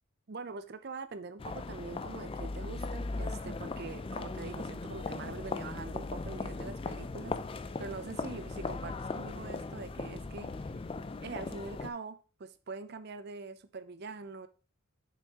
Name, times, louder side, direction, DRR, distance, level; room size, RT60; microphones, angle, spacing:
voice 1, 0.3-10.7 11.2-14.5, right 4 dB, 45° right, 0.5 m, -44 dB
sound 1, 1.4-11.9, left 3 dB, 25° left, 0.3 m, -38 dB
6.7 x 6.2 x 2.9 m
head